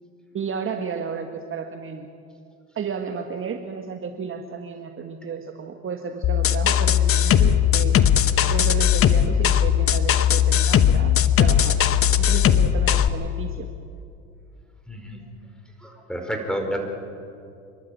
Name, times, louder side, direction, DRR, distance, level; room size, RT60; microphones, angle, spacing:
voice 1, 0.3-2.1 2.8-8.0 8.5-11.8 12.2-13.7, right 6 dB, 35° right, 5 dB, 1.6 m, -32 dB
sound 1, 6.2-13.1, left 9 dB, 40° left, 1.1 m, -18 dB
voice 2, 14.9-15.2 15.8-16.8, equal, ahead, 3 dB, 5.2 m, -29 dB
27.5 x 12.0 x 9.1 m, 2.4 s
hypercardioid pair, 70°, 34 cm